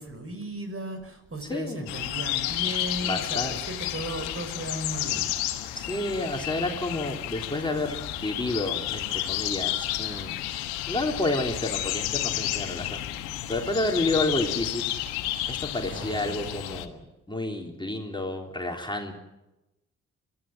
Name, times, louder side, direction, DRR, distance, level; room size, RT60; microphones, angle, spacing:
voice 1, 0.0-5.3 15.8-16.4, right 1 dB, 35° right, 8 dB, 5.6 m, -36 dB
voice 2, 1.5-1.9 3.0-3.6 5.7-10.4 10.9-13.0 13.5-14.8 15.5-17.0 17.3-19.1, left 2 dB, 15° left, 2 dB, 3.3 m, -30 dB
sound 1, 1.9-16.9, left 14 dB, 85° left, 1.4 m, -31 dB
23.5 x 15.5 x 9.1 m, 0.99 s
hypercardioid pair, 40°, 36 cm